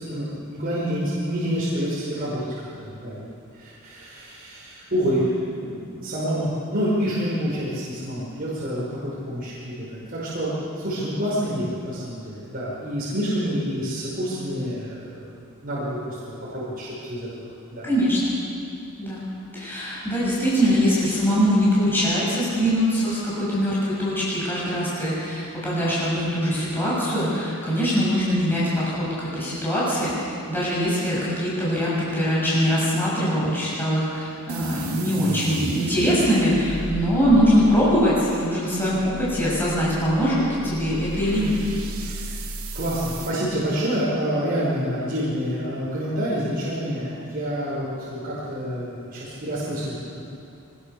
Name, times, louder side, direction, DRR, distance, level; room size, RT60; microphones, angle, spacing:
voice 1, 0.0-17.9 42.0-42.3 42.7-50.2, equal, 45° right, -8 dB, 5.5 m, -28 dB
voice 2, 17.8-18.3 19.0-19.3 19.5-41.6, equal, 10° left, -8 dB, 6.9 m, -22 dB
sound 1, 34.5-43.4, right 1 dB, 80° right, 2.6 m, -35 dB
23.0 x 21.0 x 6.9 m, 2.6 s
head